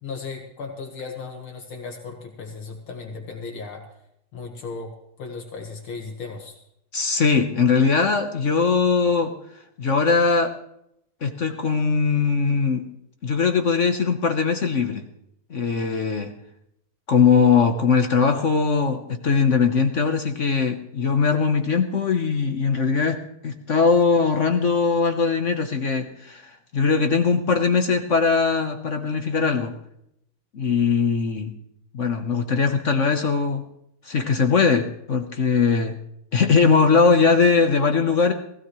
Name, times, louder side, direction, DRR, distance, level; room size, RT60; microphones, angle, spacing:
voice 1, 0.0-3.9 4.3-6.6, left 4 dB, 70° left, 1 dB, 2.4 m, -36 dB
voice 2, 6.9-9.3 9.8-10.5 11.2-12.9 13.2-15.0 15.5-16.3 17.1-23.2 23.4-29.7 30.5-31.5 31.9-33.6 34.0-36.0 36.3-38.3, left 5 dB, 50° left, 6 dB, 1.0 m, -20 dB
19.0 x 16.0 x 3.2 m, 0.77 s
omnidirectional pair, 2.4 m